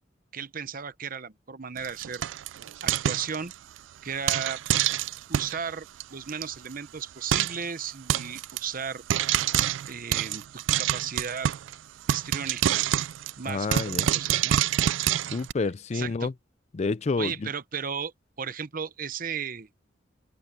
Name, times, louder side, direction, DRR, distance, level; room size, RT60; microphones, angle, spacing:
voice 1, 0.3-2.2 2.8-3.5 4.0-4.6 5.3-9.0 9.9-11.5 12.1-12.8 13.4-14.6 15.9-16.3 17.2-18.1 18.4-19.7, right 6 dB, 50° right, 0.8 m, -35 dB
Frying (food), 1.8-3.8 4.3-5.6 6.0-6.1 6.3-6.4 6.7-6.8 7.3-7.6 8.1-8.6 9.1-11.7 12.1-15.5, right 11 dB, 85° right, 0.4 m, -26 dB
voice 2, 13.5-14.1 15.3-16.3 16.7-17.5, left 3 dB, 35° left, 0.4 m, -29 dB
open air
head